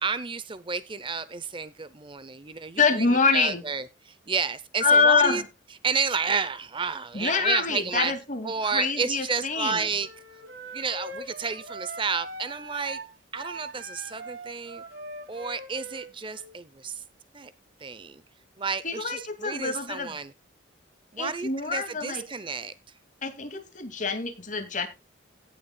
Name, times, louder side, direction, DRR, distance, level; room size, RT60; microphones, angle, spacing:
voice 1, 0.0-2.8 3.3-5.4 5.8-8.1 8.4-10.1 10.7-13.0 13.3-14.8 15.3-17.0 17.3-17.5 17.8-18.2 18.6-20.3 21.1-22.7, right 5 dB, 25° right, 0.6 m, -31 dB
voice 2, 2.8-3.6 4.8-5.5 7.1-9.9 18.8-20.2 21.2-22.2 23.2-24.9, left 4 dB, 40° left, 2.3 m, -25 dB
sound 1, 10.0-16.5, right 1 dB, 65° right, 3.3 m, -41 dB
17.5 x 6.9 x 2.2 m
head